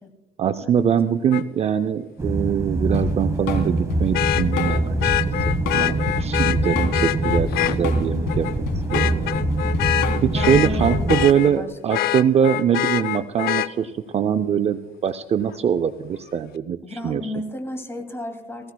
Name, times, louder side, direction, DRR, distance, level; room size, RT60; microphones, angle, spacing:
voice 1, 0.4-5.0 5.7-8.7 8.9-9.4 10.2-17.3, right 8 dB, 40° right, 10 dB, 0.5 m, -22 dB
Vehicle horn car horn honking, 1.3-1.4 4.1-7.8 8.3-8.5 8.9-11.5 11.9-13.7 15.5-15.6, left 13 dB, 70° left, 0.5 m, -25 dB
sound 1, 2.2-11.3, right 2 dB, 15° right, 1.1 m, -24 dB
Drum kit / Drum, 2.9-11.5, left 5 dB, 85° left, 3.2 m, -28 dB
voice 2, 10.3-12.1 16.8-18.7, left 1 dB, 15° left, 5 dB, 2.5 m, -33 dB
18.0 x 16.0 x 2.3 m, 1.2 s
cardioid pair, 110°, 17 cm